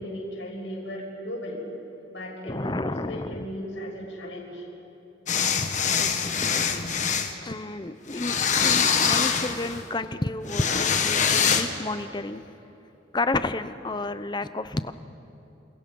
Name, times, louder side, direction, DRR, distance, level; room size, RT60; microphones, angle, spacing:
voice 1, 0.0-1.6 2.1-4.6, equal, 85° left, -2 dB, 6.6 m, -36 dB
voice 2, 2.4-3.4 6.0-6.9 7.4-12.4 13.1-14.9, left 2 dB, 25° left, 12 dB, 0.8 m, -31 dB
sound 1, 5.3-7.3 8.1-9.8 10.5-11.6, left 6 dB, 40° left, 1.5 m, -24 dB
28.5 x 28.0 x 5.5 m, 2.9 s
head